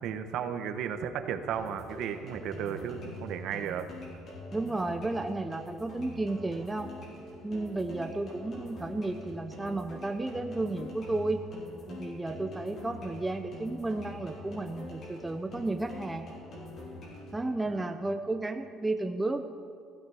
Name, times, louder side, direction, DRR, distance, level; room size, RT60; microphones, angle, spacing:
voice 1, 0.0-3.9 17.7-18.0, right 8 dB, 55° right, 8 dB, 1.0 m, -34 dB
sound 1, 1.5-17.5, left 1 dB, 40° left, 5.0 m, -45 dB
voice 2, 4.5-6.9 7.4-11.4 11.9-16.3 17.3-19.5, right 2 dB, 10° right, 6 dB, 0.5 m, -33 dB
16.0 x 16.0 x 4.9 m, 2.3 s
cardioid pair, 175°, 0 cm